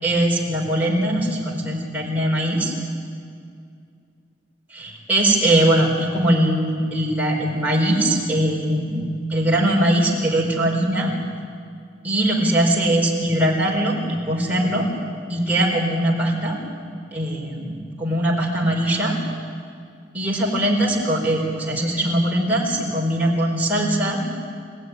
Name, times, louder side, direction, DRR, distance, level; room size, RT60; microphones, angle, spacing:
voice 1, 0.0-2.7 4.7-11.1 12.0-14.9 15.3-16.5 17.1-19.2 20.1-24.3, right 1 dB, 10° right, -3 dB, 4.6 m, -21 dB
28.5 x 16.0 x 9.8 m, 2.3 s
head